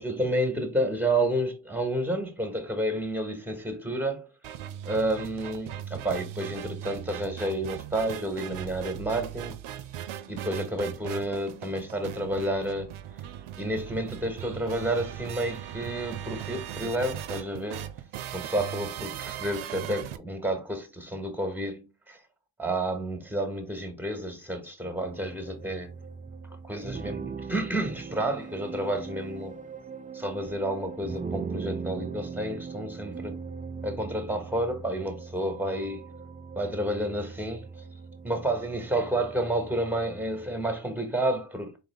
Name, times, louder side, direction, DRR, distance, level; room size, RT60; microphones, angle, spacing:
voice 1, 0.0-4.3 4.8-9.6 10.3-12.9 13.6-17.8 18.3-22.2 22.6-25.9 26.6-29.6 30.1-33.4 33.8-36.0 36.5-37.7 38.2-41.8, right 1 dB, 5° right, 1.4 m, -30 dB
sound 1, 4.4-20.2, right 11 dB, 80° right, 0.6 m, -39 dB
sound 2, 25.0-40.8, right 5 dB, 20° right, 0.3 m, -40 dB
3.7 x 3.1 x 3.5 m
cardioid pair, 55°, 49 cm